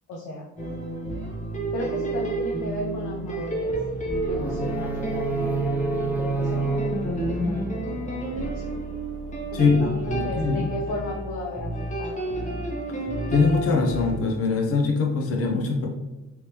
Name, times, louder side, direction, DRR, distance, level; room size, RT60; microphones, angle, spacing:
voice 1, 0.1-0.5 1.7-3.8 4.3-5.5 5.9-8.8 9.5-11.7 12.0-12.4, left 1 dB, 90° left, -2 dB, 0.7 m, -35 dB
sound 1, 0.6-14.1, right 1 dB, 25° left, 1.0 m, -30 dB
sound 2, 4.4-8.4, right 3 dB, 5° right, 0.5 m, -29 dB
voice 2, 9.5-10.7 13.3-15.9, left 4 dB, 50° left, 1 dB, 0.7 m, -22 dB
3.4 x 3.0 x 2.9 m, 1.1 s
cardioid pair, 90°, 30 cm